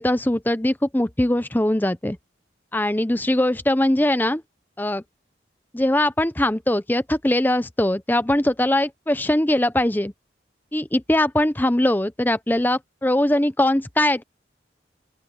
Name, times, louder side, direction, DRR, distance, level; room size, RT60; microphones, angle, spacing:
voice 1, 0.0-2.2 2.7-4.4 4.8-5.0 5.7-10.1 10.7-14.2, left 1 dB, 10° left, 0.6 m, -21 dB
open air
head